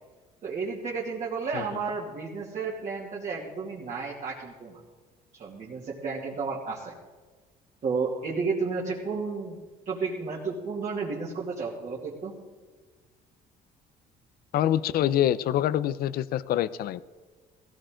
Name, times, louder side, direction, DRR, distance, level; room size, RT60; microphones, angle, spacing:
voice 1, 0.4-4.8 5.3-6.9 7.8-9.6 9.9-12.4, right 4 dB, 45° right, -4 dB, 2.6 m, -32 dB
voice 2, 14.5-17.0, left 11 dB, 65° left, 17 dB, 0.6 m, -25 dB
16.5 x 16.5 x 3.8 m, 1.4 s
cardioid pair, 110°, 17 cm